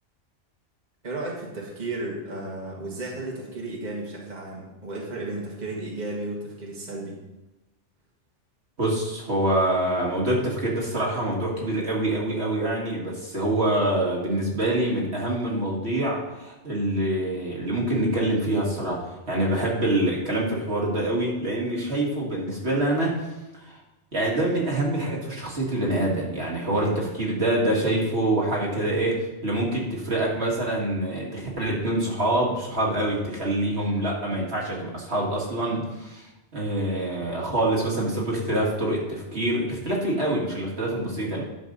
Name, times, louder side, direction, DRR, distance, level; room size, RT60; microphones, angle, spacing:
voice 1, 1.0-7.2 26.7-27.2, right 2 dB, 40° right, -3 dB, 1.7 m, -34 dB
voice 2, 8.8-19.0 19.3-23.2 23.6-23.8 24.1-36.3 36.5-41.4, right 1 dB, 65° right, -3 dB, 2.2 m, -25 dB
10.5 x 6.9 x 4.0 m, 1.0 s
omnidirectional pair, 1.2 m